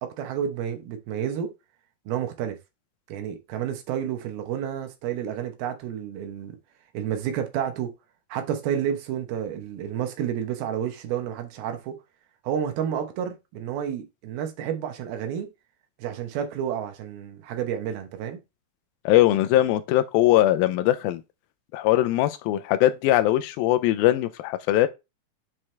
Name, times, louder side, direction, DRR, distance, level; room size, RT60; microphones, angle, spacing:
voice 1, 0.0-1.5 2.1-2.6 3.1-6.6 6.9-7.9 8.3-11.9 12.4-15.5 16.0-18.4, right 9 dB, 80° right, 3.0 m, -30 dB
voice 2, 19.1-21.2 21.7-24.9, left 14 dB, 80° left, 2.4 m, -21 dB
7.4 x 4.8 x 3.3 m
omnidirectional pair, 4.3 m